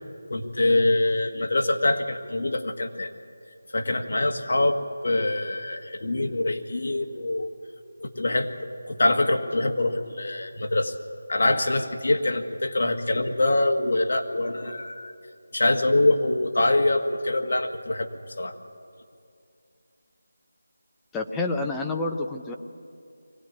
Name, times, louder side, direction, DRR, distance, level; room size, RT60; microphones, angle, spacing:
voice 1, 0.3-3.1 3.7-7.5 8.0-8.5 8.9-10.9 11.3-15.1 15.5-18.1 18.4-18.5, left 2 dB, 55° left, 4 dB, 1.8 m, -24 dB
voice 2, 21.1-22.5, left 2 dB, 5° left, 1 dB, 0.6 m, -28 dB
23.0 x 18.0 x 9.6 m, 2.5 s
figure-of-eight pair, 175°, 0 cm